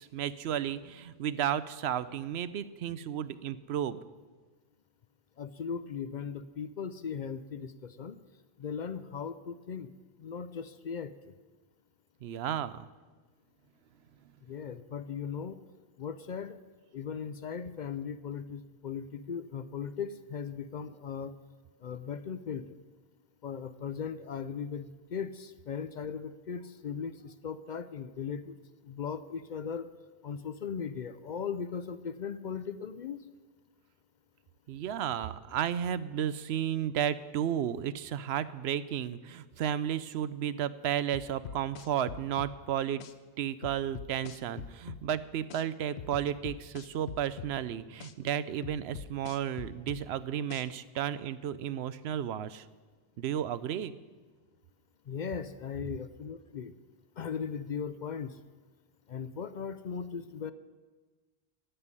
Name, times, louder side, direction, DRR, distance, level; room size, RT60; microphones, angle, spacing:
voice 1, 0.0-4.0 12.2-12.9 34.7-43.0 43.4-52.6 53.2-53.9, right 10 dB, 85° right, 15 dB, 0.8 m, -33 dB
voice 2, 5.4-8.2 8.6-9.9 10.2-11.1 14.5-15.6 16.0-16.6 16.9-21.3 21.8-22.6 23.4-28.6 28.9-29.9 30.2-33.2 55.1-56.7 57.2-58.3 59.1-60.5, left 6 dB, 55° left, 13 dB, 0.6 m, -38 dB
sound 1, 41.1-42.5 43.0-43.1 43.6-45.0 45.5-45.6 46.0-47.5 48.0-48.1 48.6-50.0 50.5-50.6, left 8 dB, 85° left, 0.9 m, -43 dB
14.5 x 5.6 x 9.7 m, 1.3 s
omnidirectional pair, 1.1 m